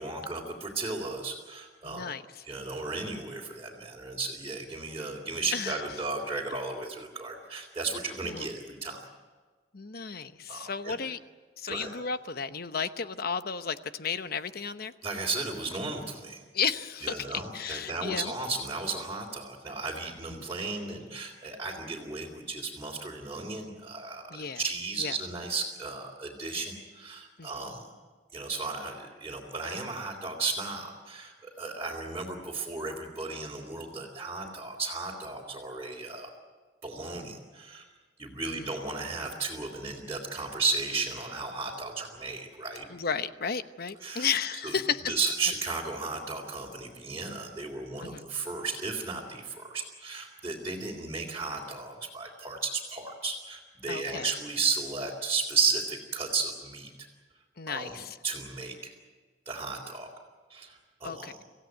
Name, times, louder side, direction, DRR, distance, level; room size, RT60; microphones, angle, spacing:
voice 1, 0.0-2.1 2.4-9.0 10.5-10.9 11.7-11.9 15.0-16.4 17.0-27.9 28.3-36.3 36.8-37.8 38.2-42.9 44.0-44.3 44.6-44.7 45.1-56.9 57.7-58.9 59.4-60.1 60.5-61.3, right 4 dB, 15° right, -5 dB, 3.3 m, -34 dB
voice 2, 1.8-2.4 5.5-5.8 8.2-8.5 9.7-11.2 11.6-14.9 16.5-18.3 20.3-20.5 24.3-24.6 25.0-25.2 27.4-27.7 38.5-38.7 42.9-45.2 48.0-48.3 53.9-54.3 57.6-58.2 61.0-61.3, left 6 dB, 55° left, 11 dB, 1.0 m, -33 dB
26.5 x 16.5 x 9.4 m, 1.4 s
head